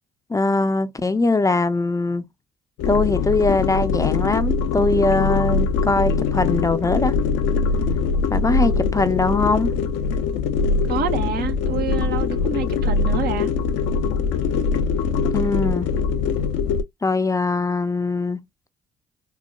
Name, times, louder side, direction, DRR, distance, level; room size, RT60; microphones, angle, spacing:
voice 1, 0.3-2.3 2.9-7.1 8.3-9.7 15.3-15.9 17.0-18.4, left 3 dB, 20° left, 0.4 m, -21 dB
sound 1, 2.8-16.8, left 5 dB, 75° left, 0.5 m, -22 dB
voice 2, 10.9-13.5, right 7 dB, 60° right, 0.7 m, -28 dB
4.1 x 2.1 x 2.2 m
hypercardioid pair, 55°, 18 cm